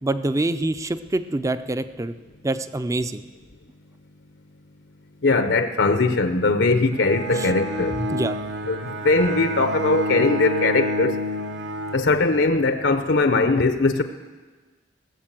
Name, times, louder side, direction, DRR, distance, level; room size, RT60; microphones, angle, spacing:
voice 1, 0.0-2.1 2.4-3.2 7.3-7.5 7.9-8.4, right 2 dB, 20° right, 12 dB, 0.5 m, -26 dB
voice 2, 5.2-8.0 8.7-11.2 11.9-14.0, left 3 dB, 85° left, 9 dB, 0.8 m, -20 dB
Bowed string instrument, 6.9-12.7, equal, 70° right, 1.0 m, -29 dB
18.0 x 7.3 x 7.5 m, 1.4 s
head